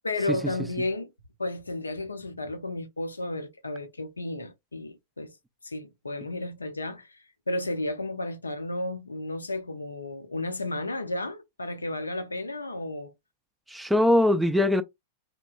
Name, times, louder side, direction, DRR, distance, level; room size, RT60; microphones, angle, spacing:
voice 1, 0.0-1.1 1.4-5.3 5.6-7.2 7.5-13.1, left 2 dB, 85° left, 0.5 m, -33 dB
voice 2, 13.7-14.8, left 1 dB, 5° right, 0.3 m, -22 dB
2.7 x 2.1 x 2.4 m
figure-of-eight pair, 95°, 0 cm